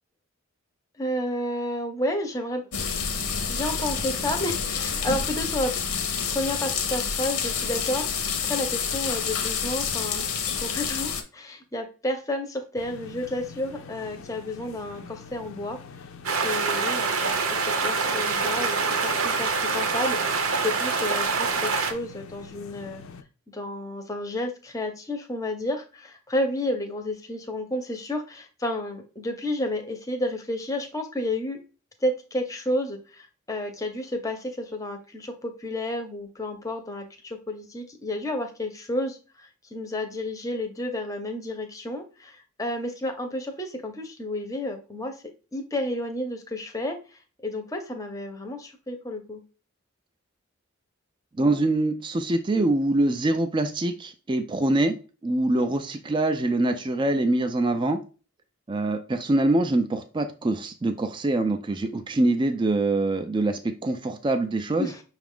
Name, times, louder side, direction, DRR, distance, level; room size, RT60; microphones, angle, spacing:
voice 1, 1.0-2.7 3.5-5.7 6.3-10.3 10.6-15.8 16.3-23.0 23.5-31.6 32.0-45.2 45.5-49.4 64.8-65.0, left 1 dB, 15° left, 5 dB, 0.7 m, -31 dB
sound 1, 2.7-11.2, left 6 dB, 90° left, 0.8 m, -28 dB
sound 2, 12.8-23.2, left 5 dB, 65° left, 0.5 m, -45 dB
sound 3, 16.2-21.9, right 4 dB, 70° right, 0.7 m, -25 dB
voice 2, 51.4-55.0 55.2-58.0 58.7-64.9, right 2 dB, 20° right, 6 dB, 0.3 m, -24 dB
5.8 x 2.4 x 3.5 m, 0.34 s
head